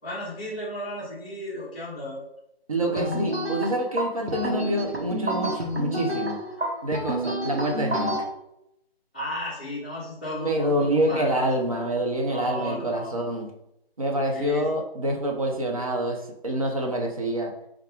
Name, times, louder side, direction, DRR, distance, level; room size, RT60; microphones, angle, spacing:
voice 1, 0.0-2.3 2.8-3.1 9.1-11.5 12.3-13.2 14.3-14.6, left 1 dB, 10° left, -11 dB, 0.6 m, -34 dB
voice 2, 2.7-6.4 6.8-8.1 10.4-13.5 14.0-16.2 16.4-17.5, right 1 dB, 35° right, 1 dB, 0.5 m, -26 dB
sound 1, 3.0-8.2, right 1 dB, 90° right, 1.0 m, -29 dB
5.2 x 2.3 x 2.4 m, 0.80 s
figure-of-eight pair, 150°, 31 cm